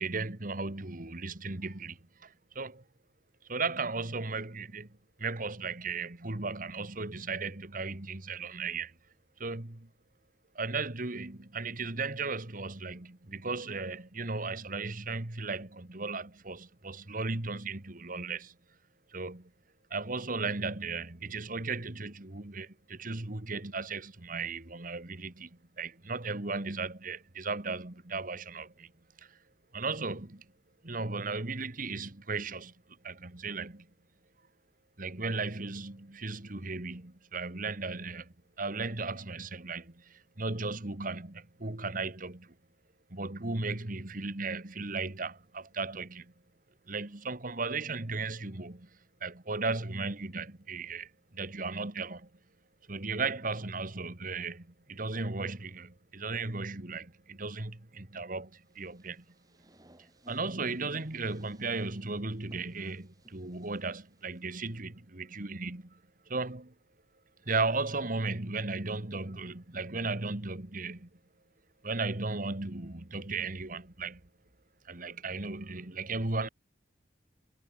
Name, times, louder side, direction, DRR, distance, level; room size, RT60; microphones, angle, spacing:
voice 1, 0.0-2.8 3.5-4.9 5.2-8.9 9.4-9.9 10.6-18.5 19.1-19.5 19.9-25.5 25.8-28.9 29.2-29.4 29.7-30.4 30.8-32.7 33.0-33.9 35.0-42.5 43.1-46.3 46.9-48.9 49.2-52.3 52.9-59.2 60.3-66.0 66.3-66.7 67.5-71.1 71.8-74.2 74.9-76.5, right 3 dB, 50° right, 1.8 m, -36 dB
sound 1, 58.6-64.7, right 1 dB, 20° right, 4.9 m, -61 dB
head